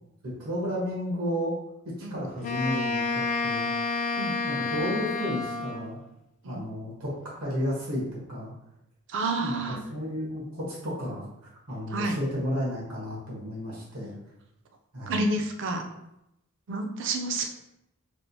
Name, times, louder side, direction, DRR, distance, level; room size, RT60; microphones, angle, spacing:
voice 1, 0.2-1.6 1.8-3.7 4.3-6.0 6.4-8.5 9.4-11.3 11.7-14.2 14.9-15.2, equal, 85° right, -4 dB, 1.2 m, -32 dB
Wind instrument woodwind instrument, 2.4-6.0, left 3 dB, 35° left, 0.3 m, -29 dB
voice 2, 9.1-9.8 11.9-12.2 15.1-15.8 16.7-17.4, right 2 dB, 55° right, 4 dB, 0.4 m, -29 dB
3.3 x 2.5 x 2.7 m, 0.83 s
head